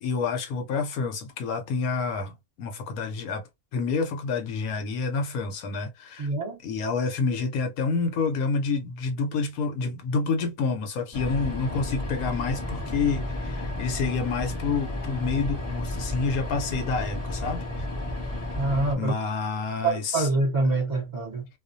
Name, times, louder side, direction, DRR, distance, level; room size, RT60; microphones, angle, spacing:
voice 1, 0.0-6.3 6.6-17.7 19.0-20.3, left 4 dB, 75° left, 1.1 m, -28 dB
voice 2, 6.2-6.6 18.6-19.1 19.8-21.5, right 3 dB, 35° right, 0.8 m, -25 dB
sound 1, 11.1-18.9, left 1 dB, 10° left, 1.0 m, -32 dB
2.4 x 2.2 x 2.5 m
omnidirectional pair, 1.6 m